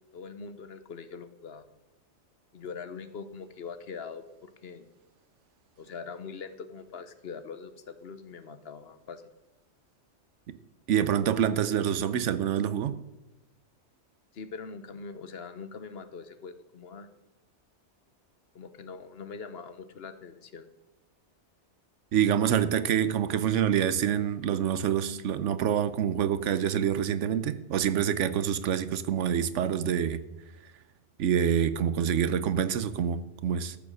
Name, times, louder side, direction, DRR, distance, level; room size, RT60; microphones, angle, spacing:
voice 1, 0.1-1.6 2.5-4.9 5.8-9.2 14.3-17.1 18.5-20.7, left 5 dB, 60° left, 1.1 m, -42 dB
voice 2, 10.9-13.0 22.1-30.2 31.2-33.8, right 9 dB, 90° right, 1.1 m, -26 dB
14.0 x 6.9 x 6.4 m
omnidirectional pair, 1.2 m